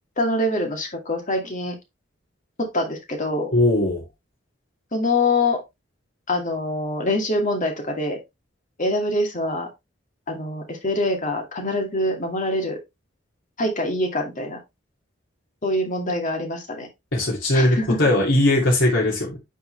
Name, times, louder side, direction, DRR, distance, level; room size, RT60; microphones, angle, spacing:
voice 1, 0.2-1.8 2.6-3.5 4.9-5.6 6.3-8.2 8.8-9.7 10.3-12.8 13.6-14.6 15.6-16.9 17.5-18.0, left 2 dB, 40° left, 3 dB, 2.2 m, -24 dB
voice 2, 3.5-4.0 17.1-19.4, left 1 dB, 70° left, -4 dB, 2.7 m, -19 dB
9.8 x 4.6 x 3.2 m, 0.21 s
head